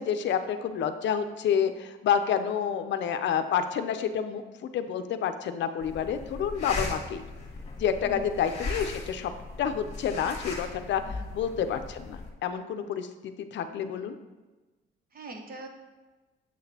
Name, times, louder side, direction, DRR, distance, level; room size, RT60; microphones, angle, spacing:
voice 1, 0.0-7.2 7.8-9.3 9.6-14.1, left 8 dB, 65° left, 8 dB, 0.5 m, -29 dB
sound 1, 5.8-12.3, left 3 dB, 35° left, 1.5 m, -38 dB
voice 2, 11.0-11.3 15.1-15.7, right 2 dB, 45° right, 3 dB, 1.1 m, -42 dB
7.4 x 5.8 x 2.8 m, 1.2 s
cardioid pair, 90°, 20 cm